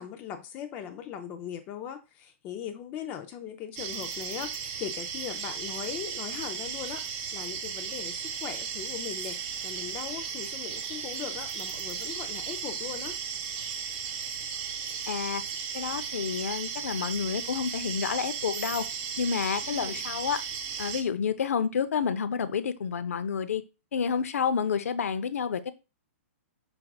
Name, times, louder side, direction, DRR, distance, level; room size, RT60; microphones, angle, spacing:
voice 1, 0.0-13.2 19.6-20.0, left 9 dB, 20° left, 0.4 m, -39 dB
sound 1, 3.8-21.0, right 7 dB, 30° right, 0.7 m, -35 dB
voice 2, 15.1-15.4 15.7-18.9 19.2-20.4 20.8-23.6 23.9-25.7, left 6 dB, 85° left, 0.6 m, -29 dB
5.9 x 3.6 x 2.3 m
hypercardioid pair, 160°, 8 cm